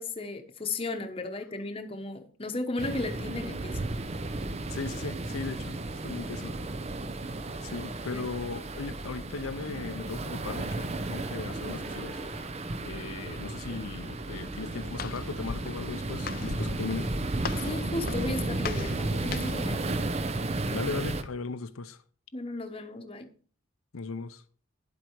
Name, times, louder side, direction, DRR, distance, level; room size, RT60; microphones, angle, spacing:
voice 1, 0.0-4.0 8.1-8.2 17.6-20.0 22.3-23.3, left 2 dB, 25° left, 1.0 m, -35 dB
sound 1, 2.8-21.2, right 2 dB, 30° right, 0.6 m, -34 dB
voice 2, 4.7-5.8 6.0-6.6 7.6-12.2 12.8-17.1 20.7-22.0 23.9-24.4, left 4 dB, 85° left, 0.7 m, -37 dB
sound 2, 7.5-12.5, equal, 10° right, 2.3 m, -53 dB
Walk footsteps, 14.3-19.7, left 5 dB, 45° left, 0.5 m, -41 dB
10.5 x 7.9 x 4.6 m
head